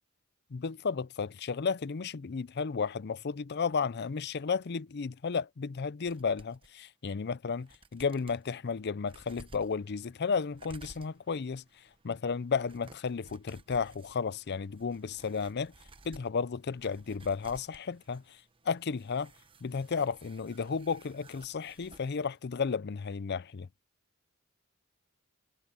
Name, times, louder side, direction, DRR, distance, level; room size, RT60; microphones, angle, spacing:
voice 1, 0.5-15.7 16.0-19.3 19.6-23.7, left 5 dB, 50° left, 0.5 m, -33 dB
sound 1, 6.1-6.7 7.2-7.3 7.6-8.4 9.0-22.2 22.4-22.5, right 2 dB, 25° right, 1.0 m, -57 dB
head